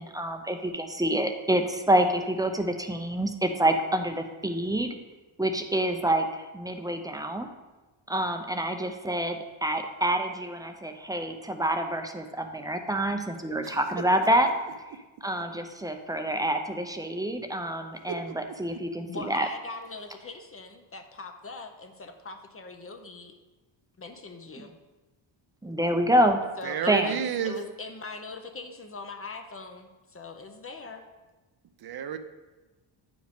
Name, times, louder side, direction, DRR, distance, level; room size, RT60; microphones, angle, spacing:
voice 1, 0.0-4.9 5.4-7.5 8.1-14.5 15.2-19.5 25.6-26.4 26.9-27.1, right 1 dB, 10° right, 5 dB, 0.6 m, -27 dB
voice 2, 13.6-14.0 18.1-18.4 18.7-18.8 26.6-27.6 31.8-32.2, right 8 dB, 50° right, 9 dB, 0.7 m, -32 dB
voice 3, 19.1-23.4 24.0-24.8 26.6-31.0, left 3 dB, 30° left, 5 dB, 0.7 m, -41 dB
9.0 x 5.0 x 3.6 m, 1.2 s
cardioid pair, 85°, 47 cm